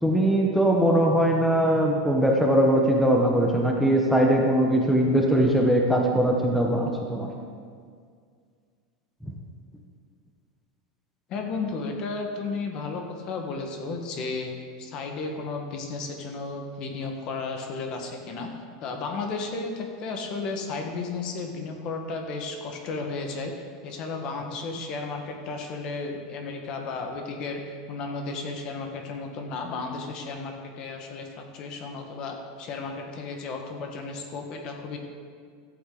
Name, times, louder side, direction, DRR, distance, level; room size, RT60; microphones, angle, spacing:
voice 1, 0.0-7.3 9.2-9.3, right 1 dB, ahead, -1 dB, 0.9 m, -21 dB
voice 2, 11.3-14.5 14.8-18.5 18.8-35.0, left 3 dB, 35° left, 3 dB, 1.5 m, -33 dB
14.0 x 8.5 x 4.0 m, 2.1 s
supercardioid pair, 165°, 2 cm